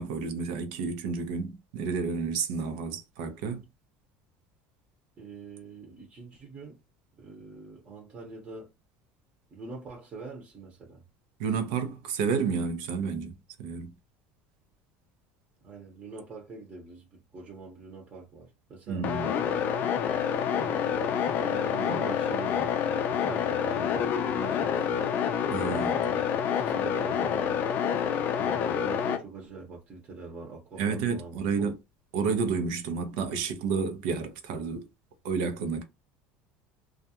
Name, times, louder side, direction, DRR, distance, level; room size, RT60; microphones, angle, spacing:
voice 1, 0.0-3.6 11.4-13.9 18.9-19.3 25.5-26.0 30.8-31.7 32.1-34.8 35.2-35.8, right 5 dB, 85° right, 0.7 m, -30 dB
voice 2, 5.2-6.8 7.2-8.7 9.5-11.0 15.6-20.1 20.5-25.2 26.0-27.6 28.3-31.7, right 4 dB, 30° right, 0.9 m, -44 dB
sound 1, 19.0-29.2, left 8 dB, 40° left, 0.4 m, -28 dB
2.4 x 2.2 x 2.8 m
cardioid pair, 150°, 5 cm